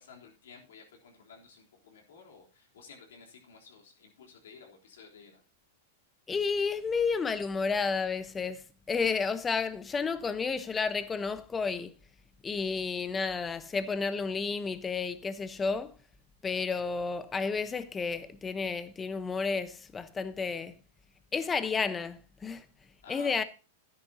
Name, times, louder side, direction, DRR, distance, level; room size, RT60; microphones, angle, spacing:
voice 1, 0.0-5.4 23.0-23.5, left 5 dB, 80° left, 3.5 m, -53 dB
voice 2, 6.3-11.9 12.4-15.9 16.4-20.7 21.3-22.6 23.1-23.4, left 5 dB, 20° left, 1.0 m, -31 dB
12.0 x 10.5 x 2.8 m
hypercardioid pair, 115°, 0 cm